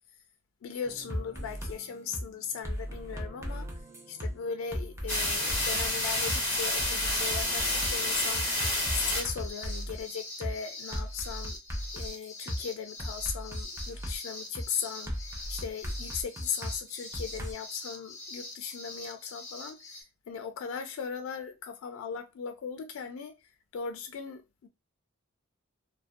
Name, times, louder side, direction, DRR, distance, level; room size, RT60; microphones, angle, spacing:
voice 1, 0.6-3.7 4.1-8.5 8.9-11.6 11.9-19.9 20.3-23.3 23.7-24.7, left 7 dB, 80° left, 0.3 m, -38 dB
sound 1, 0.8-9.3, right 1 dB, 60° right, 0.8 m, -53 dB
sound 2, 1.1-1.7 2.1-2.3 2.6-4.3 4.7-5.9 6.3-6.4 6.8-10.0 10.4-10.5 10.9-12.6 13.0-14.2 14.5-14.7 15.1-17.5, equal, 15° right, 0.4 m, -36 dB
sound 3, 5.1-20.0, left 1 dB, 10° left, 0.9 m, -34 dB
2.4 x 2.1 x 2.4 m
head